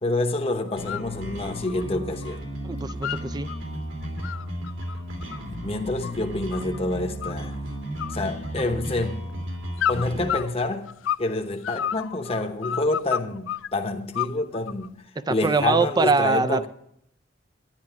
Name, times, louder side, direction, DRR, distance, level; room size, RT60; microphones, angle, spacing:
voice 1, 0.0-2.4 5.6-7.6 8.1-9.3 9.9-10.9 11.2-15.0 15.3-16.7, left 2 dB, 30° left, 0.9 m, -27 dB
sound 1, 0.7-1.1 1.4-2.4 2.7-3.6 4.0-6.8 7.2-7.7 8.0-9.0 9.8-11.3 11.6-13.7 14.1-14.9, left 9 dB, 85° left, 0.3 m, -31 dB
sound 2, 0.8-10.4, equal, 80° right, 2.8 m, -34 dB
voice 2, 2.6-3.5 15.3-16.7, right 3 dB, 20° right, 0.4 m, -23 dB
11.0 x 10.5 x 4.6 m
head